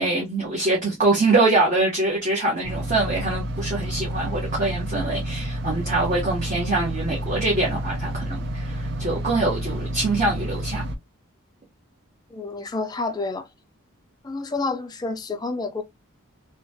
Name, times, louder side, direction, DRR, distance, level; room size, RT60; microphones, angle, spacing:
voice 1, 0.0-10.9, right 2 dB, 35° right, 0.9 m, -24 dB
sound 1, 2.6-11.0, right 1 dB, 50° right, 0.5 m, -30 dB
voice 2, 12.3-13.5 14.2-15.8, left 3 dB, 20° left, 0.3 m, -29 dB
2.9 x 2.2 x 2.6 m
head